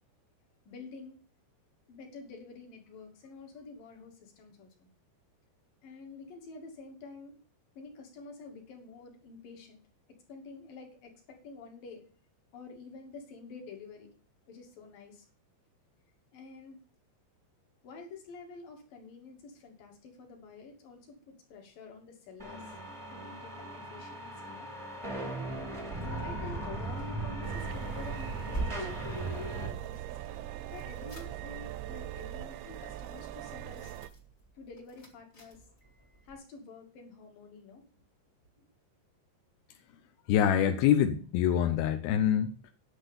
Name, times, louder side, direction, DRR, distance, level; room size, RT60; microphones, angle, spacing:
voice 1, 0.7-1.2 1.9-4.9 5.8-7.4 7.8-9.8 10.3-12.0 12.5-14.1 14.5-15.3 16.3-16.8 17.8-22.6 23.1-24.7 26.0-33.9 34.5-35.6 36.2-37.8 38.6-38.7, left 4 dB, 55° left, 2 dB, 3.6 m, -49 dB
sound 1, 22.4-29.7, right 2 dB, 25° right, 0.6 m, -38 dB
sound 2, 25.4-29.7 30.7-36.4, right 2 dB, 30° left, 1.5 m, -46 dB
sound 3, 27.4-34.1, right 13 dB, 80° right, 2.3 m, -41 dB
voice 2, 40.3-42.7, left 9 dB, 80° left, 7 dB, 2.2 m, -25 dB
10.0 x 6.3 x 6.9 m, 0.38 s
omnidirectional pair, 5.2 m